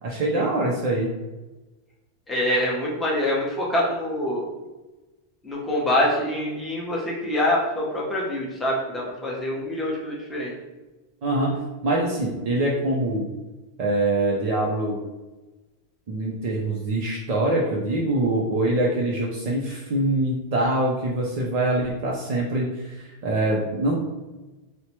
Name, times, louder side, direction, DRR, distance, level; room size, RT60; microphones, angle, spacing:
voice 1, 0.0-1.1 11.2-13.2 13.8-15.0 16.1-24.1, right 1 dB, 55° right, -2 dB, 0.4 m, -24 dB
voice 2, 2.3-4.5 5.4-10.5, left 1 dB, ahead, -4 dB, 0.5 m, -25 dB
4.3 x 2.1 x 2.9 m, 1.1 s
omnidirectional pair, 1.1 m